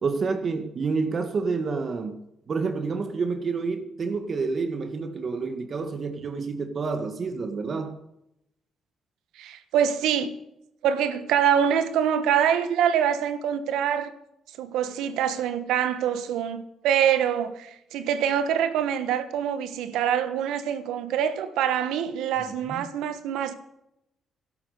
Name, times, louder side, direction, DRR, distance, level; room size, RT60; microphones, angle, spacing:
voice 1, 0.0-8.0 22.7-22.9, right 4 dB, 45° right, 1.8 m, -29 dB
voice 2, 9.3-10.3 10.8-14.1 14.6-23.5, right 9 dB, 90° right, 1.3 m, -25 dB
12.5 x 11.5 x 6.8 m
cardioid pair, 90°, 0 cm